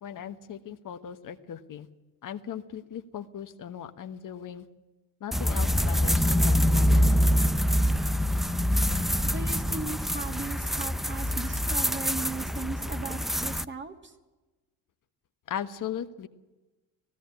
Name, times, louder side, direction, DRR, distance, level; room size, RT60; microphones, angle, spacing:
voice 1, 0.0-1.9 2.2-4.7 5.2-7.1 15.5-16.3, left 9 dB, 50° left, 8 dB, 1.4 m, -38 dB
sound 1, 5.3-13.7, equal, ahead, 0.6 m, -25 dB
voice 2, 9.2-14.1, right 4 dB, 25° right, 5 dB, 2.7 m, -37 dB
18.0 x 16.5 x 9.8 m, 1.1 s
hypercardioid pair, 70°, 41 cm